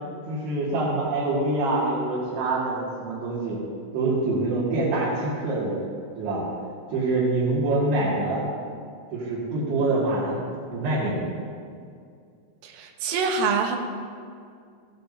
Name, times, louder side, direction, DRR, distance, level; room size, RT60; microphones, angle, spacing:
voice 1, 0.3-3.6 3.9-5.8 6.2-6.4 6.9-8.4 9.1-11.2, right 2 dB, 60° right, -9 dB, 3.8 m, -25 dB
voice 2, 12.6-13.8, right 5 dB, 85° right, 4 dB, 3.6 m, -25 dB
15.0 x 13.0 x 2.7 m, 2.3 s
omnidirectional pair, 5.7 m